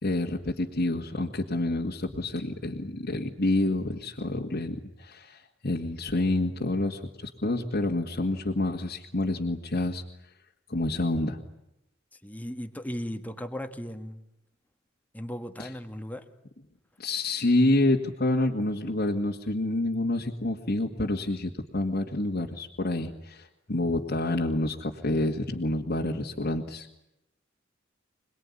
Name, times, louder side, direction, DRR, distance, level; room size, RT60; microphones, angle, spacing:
voice 1, 0.0-10.0 10.7-11.4 15.6-15.7 17.0-26.9, left 2 dB, 50° left, 1.9 m, -28 dB
voice 2, 12.2-14.2 15.1-16.3, equal, 10° left, 1.8 m, -36 dB
26.5 x 20.0 x 9.8 m
head